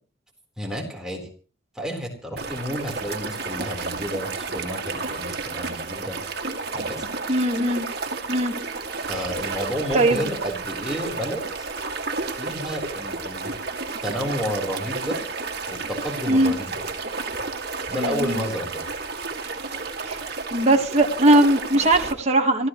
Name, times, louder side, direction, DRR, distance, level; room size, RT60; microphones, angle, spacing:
voice 1, 0.6-1.3 1.7-6.2 6.7-7.0 8.3-8.4 8.9-11.7 12.3-13.5 14.0-15.2 15.7-16.7 17.9-18.7, equal, 5° right, 0 dB, 4.1 m, -31 dB
sound 1, 2.4-22.1, right 3 dB, 55° right, 2.3 m, -31 dB
voice 2, 7.3-7.8 8.3-8.5 9.9-10.2 16.3-16.5 18.0-18.4 20.0-20.2 20.5-22.7, right 1 dB, 35° right, 3 dB, 1.6 m, -19 dB
26.0 x 14.5 x 3.2 m, 0.41 s
head